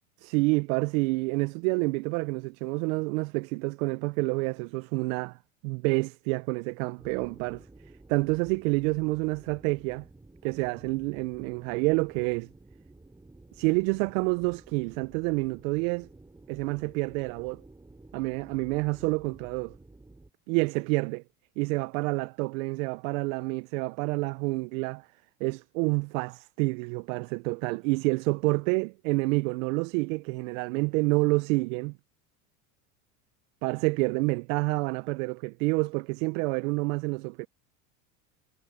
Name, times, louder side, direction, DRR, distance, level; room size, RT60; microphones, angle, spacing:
voice 1, 0.2-5.4 5.6-7.7 8.1-10.1 10.4-12.5 13.5-16.1 16.5-17.6 18.1-19.8 20.5-21.2 21.6-25.1 25.4-31.9 33.6-37.5, right 27 dB, 70° right, 0.8 m, -28 dB
sound 1, 7.0-20.3, right 2 dB, 10° right, 5.0 m, -53 dB
supercardioid pair, 100°, 41 cm